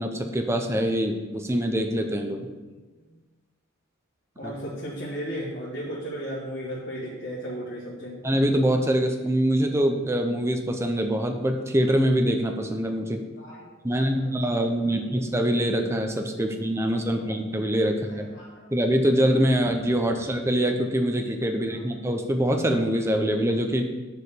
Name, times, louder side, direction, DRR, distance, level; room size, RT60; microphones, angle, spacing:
voice 1, 0.0-2.5 4.4-4.5 8.2-13.2 13.8-18.3 18.7-23.9, equal, 15° right, 4 dB, 0.6 m, -24 dB
voice 2, 4.4-8.2 13.4-15.0 16.4-16.5 17.1-17.3 18.0-18.7 21.7-22.0, equal, 55° left, -7 dB, 1.7 m, -36 dB
6.7 x 4.9 x 6.9 m, 1.2 s
head